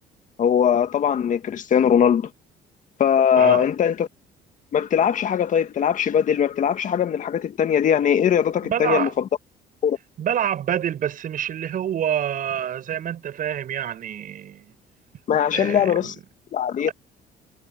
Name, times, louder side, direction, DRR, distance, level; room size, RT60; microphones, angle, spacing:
voice 1, 0.4-2.3 3.0-4.1 4.7-9.1 9.8-10.0 15.3-16.1 16.5-16.9, left 8 dB, 50° left, 2.0 m, -20 dB
voice 2, 8.6-9.1 10.2-14.7 15.5-16.2, right 9 dB, 55° right, 6.9 m, -27 dB
cardioid pair, 110°, 17 cm